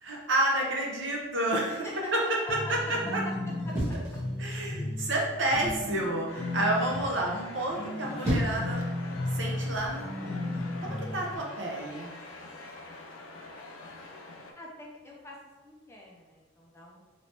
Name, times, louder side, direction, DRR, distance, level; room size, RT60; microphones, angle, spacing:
voice 1, 0.0-1.9 2.1-2.2 3.1-3.2 4.4-8.8 9.3-12.1, right 1 dB, 65° right, -2 dB, 0.7 m, -30 dB
voice 2, 1.7-2.7 3.2-3.3 3.6-4.0 14.5-15.4 15.6-17.0, left 1 dB, 15° left, -3 dB, 0.4 m, -44 dB
sound 1, 2.5-11.4, left 1 dB, 45° left, 0.7 m, -35 dB
sound 2, 3.7-4.8 5.5-5.9 7.8-8.7 9.7-10.0, equal, 15° right, 1.1 m, -32 dB
sound 3, 6.3-14.5, left 2 dB, 80° left, 0.5 m, -45 dB
3.1 x 3.0 x 2.8 m, 1.2 s
head